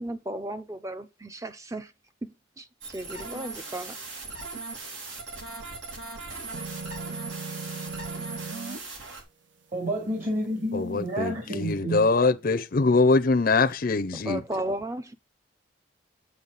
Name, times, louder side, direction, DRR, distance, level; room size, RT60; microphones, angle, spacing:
voice 1, 0.0-1.9 2.2-4.0 14.2-15.1, right 1 dB, 15° right, 0.7 m, -35 dB
sound 1, 2.8-9.2, right 3 dB, 75° right, 3.7 m, -39 dB
sound 2, 6.5-8.8, right 4 dB, 60° right, 0.9 m, -37 dB
voice 2, 9.7-12.1, right 1 dB, 40° right, 2.5 m, -30 dB
voice 3, 10.7-14.4, left 3 dB, 45° left, 0.6 m, -23 dB
8.1 x 7.2 x 4.0 m
head